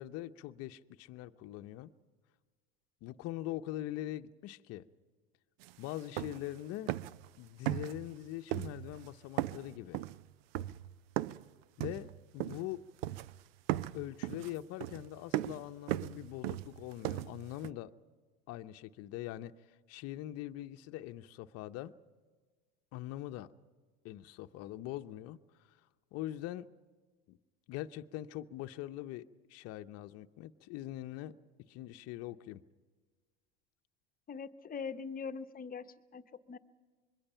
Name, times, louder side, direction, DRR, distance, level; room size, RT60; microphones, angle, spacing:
voice 1, 0.0-1.9 3.0-4.9 5.8-7.0 7.4-10.0 11.8-12.8 13.9-17.9 18.5-21.9 22.9-23.5 24.0-25.8 26.1-26.7 27.3-27.4 27.7-31.4 31.7-32.6, left 14 dB, 50° left, 0.9 m, -43 dB
sound 1, 5.6-5.7 6.0-6.6 6.9-7.3 7.7-8.2 8.5-9.1 9.4-11.5 11.8-12.7 13.0-13.4 13.7-17.7, right 14 dB, 70° right, 0.6 m, -37 dB
voice 2, 34.3-35.9 36.1-36.6, left 5 dB, 30° left, 1.1 m, -42 dB
25.5 x 22.0 x 5.7 m
hypercardioid pair, 90°, 31 cm